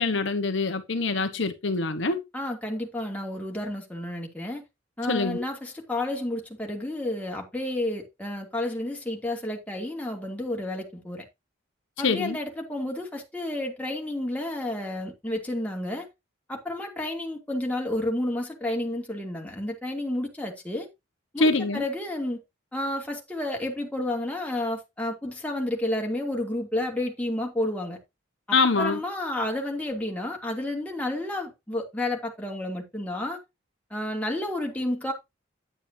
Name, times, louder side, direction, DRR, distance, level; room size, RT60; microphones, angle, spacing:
voice 1, 0.0-2.2 5.1-5.4 12.0-12.4 21.4-21.8 28.5-29.0, left 3 dB, 70° left, 1.2 m, -24 dB
voice 2, 2.3-4.6 5.0-11.2 12.0-16.1 16.5-20.9 21.3-22.4 22.7-28.0 28.5-33.4 33.9-35.1, left 1 dB, 10° left, 2.9 m, -31 dB
10.0 x 9.0 x 2.8 m
head